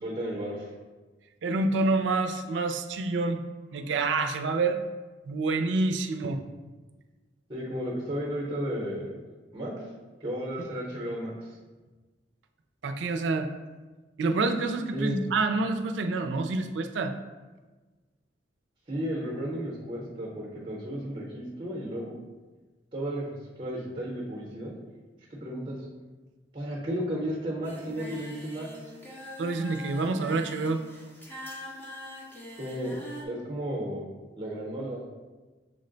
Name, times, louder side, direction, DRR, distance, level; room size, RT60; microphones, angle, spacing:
voice 1, 0.0-0.7 7.5-9.2 9.5-9.9 10.2-11.5 14.9-15.2 18.9-22.1 22.9-23.3 23.6-24.7 25.3-25.8 26.5-28.7 32.6-33.0 33.2-34.0 34.3-35.0, equal, 25° right, -3 dB, 0.8 m, -33 dB
voice 2, 1.4-3.4 3.7-4.8 5.2-6.4 10.6-10.7 12.8-13.5 14.2-17.1 29.4-30.8, right 3 dB, 85° right, 6 dB, 0.4 m, -27 dB
Singing, 27.6-33.2, equal, 10° left, 0.7 m, -43 dB
6.4 x 2.1 x 3.8 m, 1.3 s
head